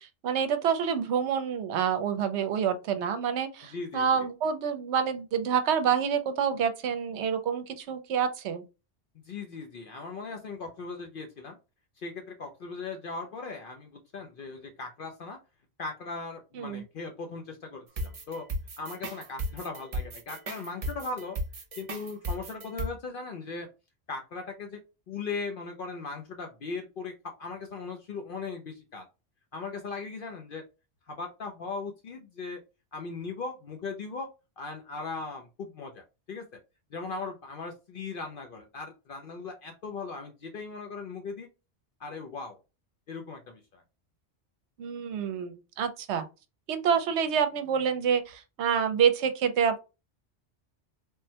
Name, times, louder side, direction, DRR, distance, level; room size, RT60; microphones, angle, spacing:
voice 1, 0.0-8.6 16.6-16.8 44.8-46.2 46.7-49.8, right 7 dB, 75° right, 0.8 m, -27 dB
voice 2, 3.7-4.3 9.1-11.6 12.0-15.4 15.8-18.5 18.8-21.4 21.8-23.7 24.1-29.1 29.5-30.7 31.1-32.6 32.9-34.3 34.6-36.5 36.9-41.5 42.0-42.6 43.1-43.8, left 4 dB, 60° left, 0.6 m, -38 dB
sound 1, 18.0-22.9, right 1 dB, 45° right, 0.5 m, -35 dB
3.5 x 2.1 x 2.7 m
omnidirectional pair, 1.2 m